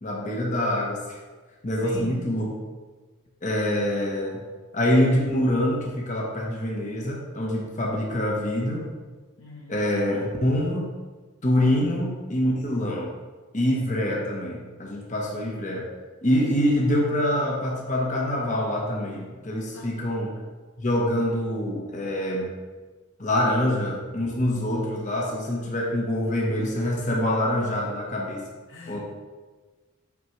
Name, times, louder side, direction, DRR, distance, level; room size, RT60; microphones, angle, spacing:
voice 1, 0.0-1.2 1.6-2.5 3.4-4.4 4.7-8.9 9.7-10.9 11.4-13.1 13.5-15.9 16.2-20.3 20.8-22.5 23.2-28.4 28.9-29.0, left 1 dB, 40° left, -2 dB, 0.9 m, -25 dB
voice 2, 1.8-2.2 9.4-9.8 19.7-19.9 28.7-29.0, equal, 65° left, 0 dB, 1.0 m, -42 dB
5.9 x 5.8 x 3.1 m, 1.3 s
head